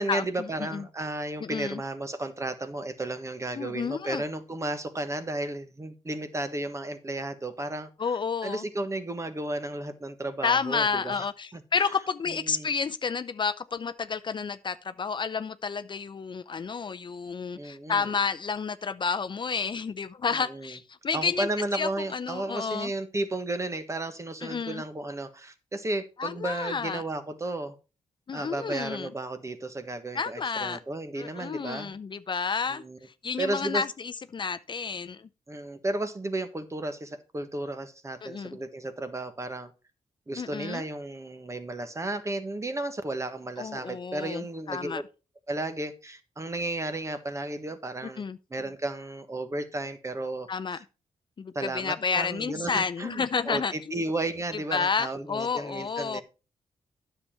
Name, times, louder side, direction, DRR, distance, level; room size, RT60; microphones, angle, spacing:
voice 1, 0.0-8.2 8.4-11.3 11.5-11.9 12.3-12.7 17.5-18.1 20.3-20.8 21.1-27.7 28.3-31.9 32.7-33.0 33.4-33.8 35.5-39.7 40.3-45.0 45.5-48.2 48.5-50.8 51.5-56.2, right 2 dB, 25° right, 1.4 m, -33 dB
voice 2, 1.4-1.8 3.6-4.2 8.0-8.6 10.4-21.5 21.7-22.9 24.4-24.8 26.2-27.0 28.3-29.1 30.1-30.8 31.2-32.8 33.2-35.3 38.2-38.6 40.4-40.8 43.6-45.0 48.2-48.4 50.5-50.8 51.4-54.1 54.7-56.2, left 5 dB, 45° left, 0.5 m, -30 dB
9.8 x 6.9 x 4.4 m
cardioid pair, 80°, 11 cm